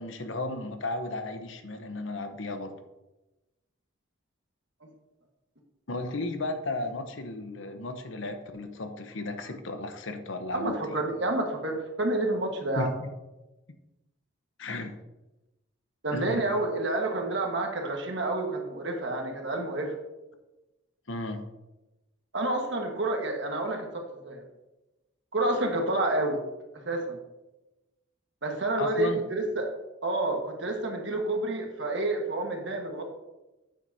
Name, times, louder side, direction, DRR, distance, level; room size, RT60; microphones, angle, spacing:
voice 1, 0.0-2.7 5.9-11.0 12.8-13.1 14.6-14.9 16.1-16.4 21.1-21.4 28.8-29.2, left 2 dB, 70° left, 7 dB, 0.9 m, -34 dB
voice 2, 10.5-12.9 16.0-19.9 22.3-24.4 25.3-26.4 26.7-27.2 28.4-29.7 30.0-33.0, right 2 dB, 60° right, 2 dB, 1.5 m, -29 dB
9.0 x 7.6 x 2.8 m, 1.0 s
head